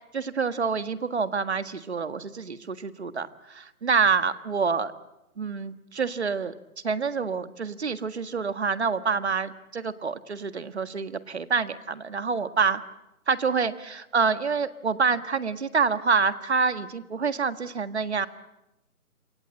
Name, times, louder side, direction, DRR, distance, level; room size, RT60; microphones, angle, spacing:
voice 1, 0.1-4.9 5.4-6.5 6.8-12.8 13.3-18.3, right 5 dB, 50° right, 11 dB, 1.7 m, -27 dB
27.5 x 24.0 x 7.7 m, 0.93 s
hypercardioid pair, 170°, 43 cm